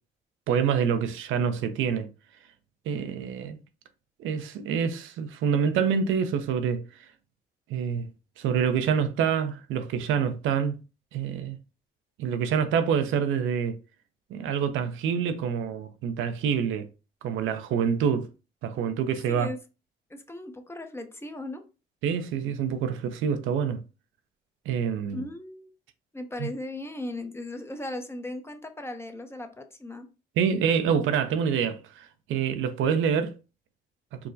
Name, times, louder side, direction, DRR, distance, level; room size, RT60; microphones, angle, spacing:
voice 1, 0.5-2.1 2.9-3.6 4.2-6.8 7.7-8.1 8.4-10.8 11.1-11.6 12.2-13.8 14.3-16.9 17.2-18.3 18.6-19.5 22.0-23.8 24.7-25.2 26.4-26.5 30.4-33.3, right 7 dB, 85° right, 0.5 m, -26 dB
voice 2, 19.3-19.6 20.1-21.6 25.1-25.7 26.1-30.1, left 1 dB, 10° left, 0.6 m, -37 dB
4.5 x 2.0 x 2.6 m
cardioid pair, 90°, 20 cm